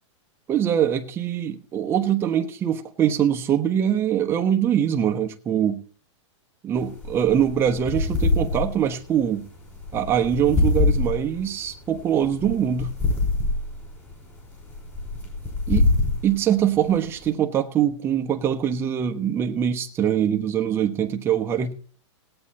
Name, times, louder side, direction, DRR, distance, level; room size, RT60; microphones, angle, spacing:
voice 1, 0.5-5.8 6.6-9.4 9.9-12.9 15.7-15.8 16.2-21.7, right 9 dB, 15° right, 0.9 m, -23 dB
sound 1, 6.7-17.3, left 3 dB, 15° left, 5.3 m, -26 dB
17.5 x 8.8 x 4.2 m
supercardioid pair, 160°, 16 cm